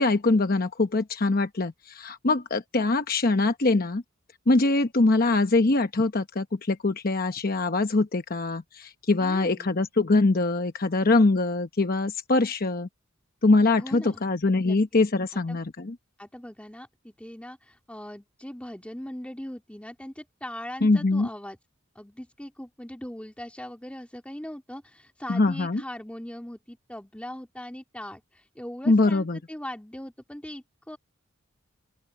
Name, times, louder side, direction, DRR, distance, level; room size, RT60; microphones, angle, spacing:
voice 1, 0.0-4.0 4.5-12.9 13.4-16.0 20.8-21.3 25.3-25.8 28.9-29.4, left 3 dB, 45° left, 0.9 m, -23 dB
voice 2, 9.2-9.9 13.8-14.2 14.6-14.8 15.3-15.6 16.2-21.6 22.0-31.0, left 1 dB, 5° left, 2.5 m, -40 dB
open air
head